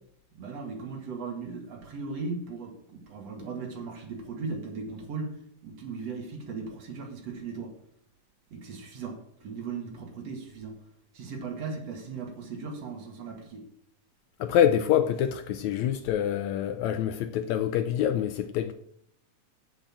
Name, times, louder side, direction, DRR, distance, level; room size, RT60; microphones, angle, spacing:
voice 1, 0.3-7.7 8.5-10.8 11.1-13.7, right 4 dB, 55° right, 2.7 m, -37 dB
voice 2, 14.4-18.7, left 10 dB, 80° left, 1.8 m, -26 dB
8.6 x 7.8 x 7.4 m
omnidirectional pair, 3.6 m